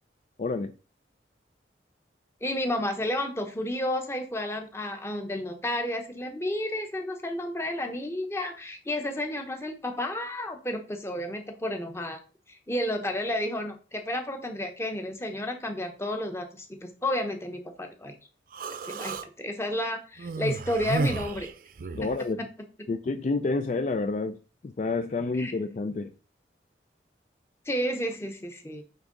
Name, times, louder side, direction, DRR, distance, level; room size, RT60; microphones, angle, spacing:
voice 1, 0.4-0.7 21.9-22.4 22.9-26.1, left 3 dB, 40° left, 0.3 m, -29 dB
voice 2, 2.4-12.2 12.5-18.2 18.8-21.5 25.3-25.5 27.7-28.8, left 1 dB, 15° left, 0.8 m, -31 dB
Human voice, 18.5-19.3 20.2-22.2, right 3 dB, 45° right, 0.4 m, -32 dB
9.0 x 3.6 x 3.8 m
head